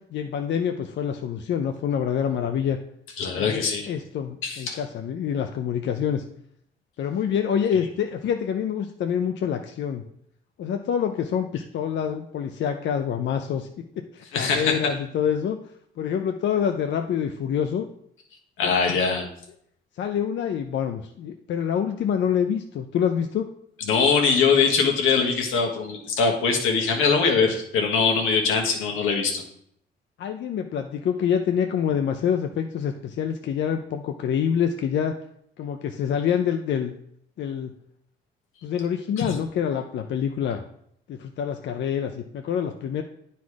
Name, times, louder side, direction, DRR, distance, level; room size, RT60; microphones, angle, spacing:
voice 1, 0.1-2.8 3.4-6.2 7.0-10.0 10.6-13.7 14.0-15.6 16.0-17.9 18.6-18.7 20.0-23.5 30.2-35.2 35.6-36.9 37.4-37.7 38.6-40.6 41.1-43.0, left 8 dB, 65° left, 5 dB, 0.6 m, -26 dB
voice 2, 3.2-3.9 4.4-4.8 14.3-14.7 18.6-19.3 23.9-29.4 39.2-39.3, left 5 dB, 90° left, 2 dB, 1.5 m, -22 dB
9.3 x 4.2 x 4.8 m, 0.71 s
cardioid pair, 90°, 20 cm